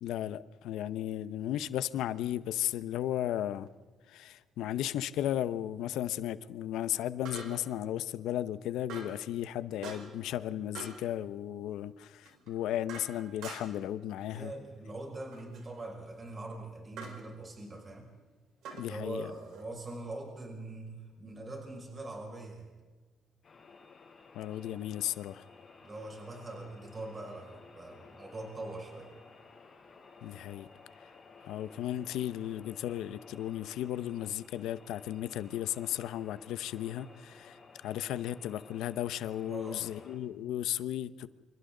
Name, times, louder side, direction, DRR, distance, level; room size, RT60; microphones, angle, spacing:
voice 1, 0.0-3.7 4.1-14.5 18.7-19.3 24.3-25.4 30.2-30.7 31.4-41.3, left 12 dB, 85° left, 15 dB, 0.8 m, -35 dB
sound 1, 3.6-3.7 7.3-7.8 8.9-9.2 9.8-10.3 10.7-11.1 12.3-13.9 15.3-15.7 17.0-17.2 18.6-19.6, right 4 dB, 85° right, 4.4 m, -46 dB
voice 2, 14.3-18.1 18.9-22.7 25.8-29.1 39.5-39.9, right 2 dB, 30° right, 0 dB, 6.0 m, -42 dB
sound 2, 23.4-40.2, left 4 dB, 45° left, 6.6 m, -55 dB
29.0 x 27.0 x 3.9 m, 1.4 s
cardioid pair, 90°, 0 cm